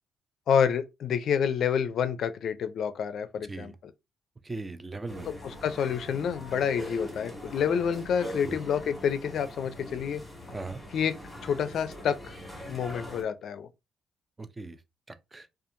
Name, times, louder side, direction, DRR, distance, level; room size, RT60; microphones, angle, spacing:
voice 1, 0.5-3.9 5.3-10.2 10.9-11.2 11.4-12.4 12.7-13.7, left 7 dB, 65° left, 0.4 m, -28 dB
voice 2, 4.4-5.3 8.4-8.6 10.5-10.8 14.4-14.8 15.3-15.5, right 3 dB, 20° right, 0.4 m, -38 dB
sound 1, 5.1-13.2, left 1 dB, 5° left, 1.5 m, -42 dB
2.7 x 2.4 x 2.5 m
cardioid pair, 90°, 0 cm